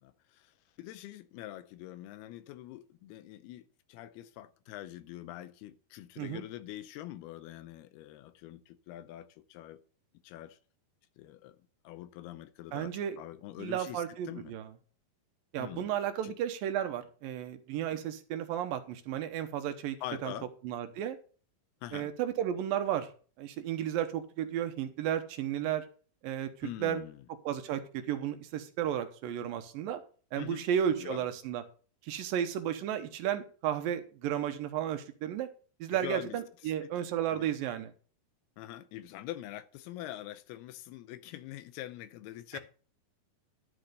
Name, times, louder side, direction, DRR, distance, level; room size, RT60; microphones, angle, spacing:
voice 1, 0.0-9.8 10.2-10.6 11.2-11.6 11.8-14.6 15.6-15.9 16.2-16.3 17.9-18.0 20.0-20.5 21.8-22.1 26.6-27.3 30.4-31.2 35.9-36.4 36.6-36.9 37.3-37.5 38.6-42.6, left 14 dB, 85° left, 2.6 m, -44 dB
voice 2, 12.7-13.2 13.6-14.7 15.5-20.0 20.2-20.3 20.6-21.2 21.9-23.1 23.4-25.9 26.2-27.0 27.5-30.0 30.3-31.6 32.0-35.5 35.8-37.9 42.5-42.6, right 10 dB, 75° right, 2.4 m, -33 dB
12.5 x 4.4 x 6.6 m
omnidirectional pair, 4.6 m